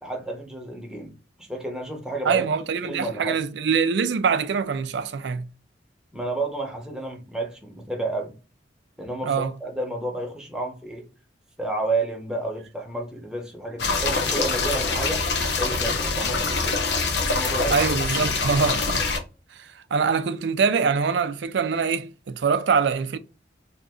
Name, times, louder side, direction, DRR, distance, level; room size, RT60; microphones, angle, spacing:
voice 1, 0.0-2.5 2.8-3.4 6.1-8.3 9.0-11.0 11.6-15.3 15.6-16.7 17.1-17.8, right 2 dB, 5° right, 0.8 m, -31 dB
voice 2, 2.2-5.5 9.2-9.5 17.7-19.1 19.6-23.2, right 5 dB, 65° right, 0.4 m, -24 dB
sound 1, 13.8-19.2, left 4 dB, 65° left, 0.7 m, -24 dB
2.8 x 2.5 x 3.5 m
head